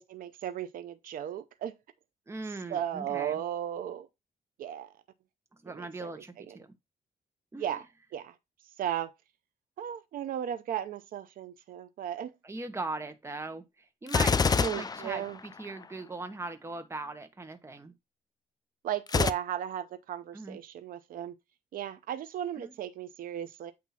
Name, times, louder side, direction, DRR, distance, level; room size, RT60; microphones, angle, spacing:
voice 1, 0.1-1.7 2.7-4.1 4.6-4.9 5.7-6.6 7.6-7.8 8.1-8.3 8.8-9.1 9.8-12.3 14.6-15.4 18.8-21.3 21.7-23.7, right 10 dB, 80° right, 0.7 m, -35 dB
voice 2, 2.3-3.4 5.6-6.7 7.5-7.8 12.4-17.9 20.3-20.6 22.6-22.7, right 2 dB, 20° right, 1.1 m, -39 dB
Gunshot gunfire, 14.1-15.8 19.1-19.3, left 5 dB, 25° left, 0.4 m, -26 dB
8.4 x 2.8 x 5.7 m
cardioid pair, 95°, 14 cm